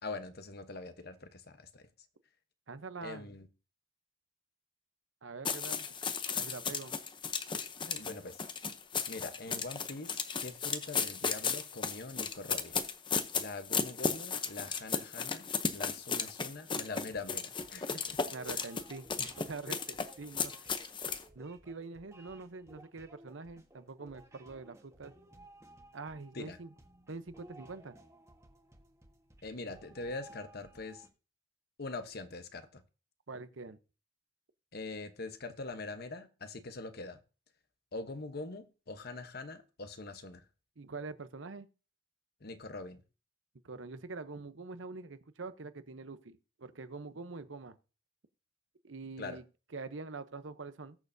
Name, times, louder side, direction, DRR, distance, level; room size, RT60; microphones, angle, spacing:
voice 1, 0.0-1.9 3.0-3.5 7.8-8.4 9.1-12.8 13.4-18.2 26.3-26.6 29.4-31.1 31.8-32.8 34.7-37.2 37.9-40.4 42.4-43.0 49.2-49.4, left 3 dB, 55° left, 1.0 m, -43 dB
voice 2, 2.7-3.3 5.2-5.9 6.3-6.9 18.3-20.7 21.4-25.1 25.9-26.7 27.1-27.9 33.3-33.8 40.8-41.7 43.6-47.8 48.8-49.4 49.7-51.0, right 3 dB, 80° right, 0.8 m, -45 dB
sound 1, 5.4-21.2, left 5 dB, 25° left, 0.7 m, -35 dB
sound 2, 16.2-31.1, right 1 dB, 15° right, 1.4 m, -58 dB
19.5 x 6.7 x 2.7 m
head